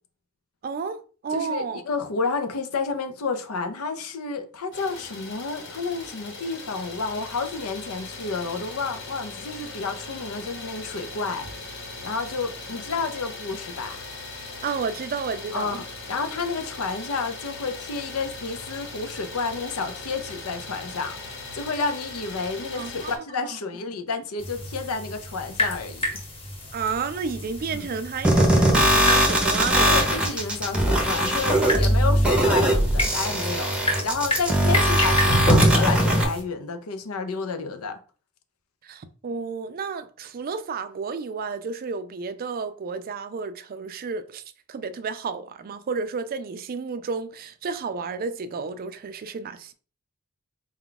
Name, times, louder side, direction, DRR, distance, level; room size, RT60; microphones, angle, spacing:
voice 1, 0.6-1.8 14.6-15.8 22.7-23.6 26.7-30.1 38.8-44.4 44.7-49.7, right 5 dB, 45° right, 0.3 m, -31 dB
voice 2, 1.3-11.5 12.0-14.0 15.5-26.2 27.7-27.9 29.9-38.0, left 4 dB, 85° left, 0.6 m, -30 dB
Idling, 4.7-23.2, left 3 dB, 55° left, 1.0 m, -39 dB
sound 1, 24.4-36.4, equal, 25° left, 1.0 m, -29 dB
sound 2, 28.2-36.2, equal, 5° right, 0.7 m, -20 dB
4.3 x 2.3 x 3.8 m
head